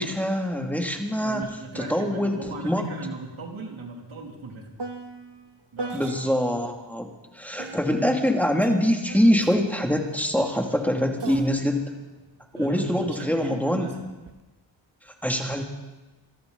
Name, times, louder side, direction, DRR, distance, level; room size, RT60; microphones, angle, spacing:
voice 1, 0.0-1.4 1.7-2.4 2.6-2.9 5.9-11.9 12.6-13.9 15.0-15.6, equal, 5° left, 2 dB, 2.6 m, -24 dB
voice 2, 1.2-4.7 5.7-6.1 12.5-14.0, right 3 dB, 75° right, 0 dB, 3.1 m, -38 dB
sound 1, 1.4-1.6 1.9-6.7 7.6-13.1 14.0-14.4, right 3 dB, 55° right, 1.4 m, -41 dB
26.0 x 13.0 x 4.1 m, 1.1 s
cardioid pair, 50°, 48 cm